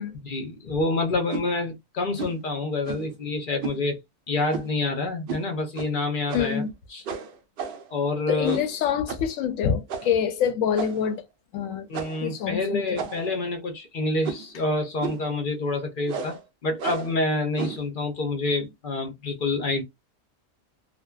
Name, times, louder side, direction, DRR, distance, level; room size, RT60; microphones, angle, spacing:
voice 1, 0.2-4.0 4.3-6.6 6.9-7.0 7.9-8.6 11.9-19.8, left 2 dB, 55° left, 0.6 m, -27 dB
sound 1, 1.3-1.5 2.2-2.4 2.8-3.1 3.6-3.8 4.5-4.8 5.3-5.5 5.7-5.9 6.3-6.6 7.1-7.9 8.4-8.8 9.1-9.3 9.9-10.2 10.7-11.1 11.9-12.3 13.0-13.4 14.2-14.5 15.0-15.3 16.1-16.4 16.8-17.2 17.6-17.9, right 6 dB, 85° right, 0.4 m, -34 dB
voice 2, 6.3-6.7 8.3-11.2 11.5-11.9 12.2-13.0, left 8 dB, 70° left, 0.9 m, -26 dB
2.6 x 2.1 x 2.2 m
omnidirectional pair, 1.6 m